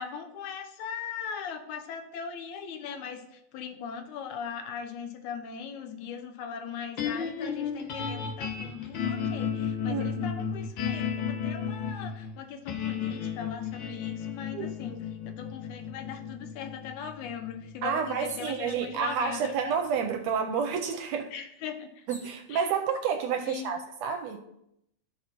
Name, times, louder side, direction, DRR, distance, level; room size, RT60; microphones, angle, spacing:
voice 1, 0.0-19.5 21.3-22.1 22.5-22.7 23.4-23.9, left 7 dB, 85° left, 6 dB, 2.2 m, -39 dB
sound 1, 7.0-19.3, left 7 dB, 70° left, 1.1 m, -34 dB
voice 2, 9.8-10.5 14.5-15.0 17.8-21.3 22.1-24.4, right 6 dB, 80° right, 5 dB, 1.7 m, -30 dB
sound 2, 18.3-18.7 19.6-19.7 20.0-22.4 23.2-23.7, equal, 10° left, 1.0 m, -52 dB
14.0 x 4.7 x 2.9 m, 0.80 s
omnidirectional pair, 3.3 m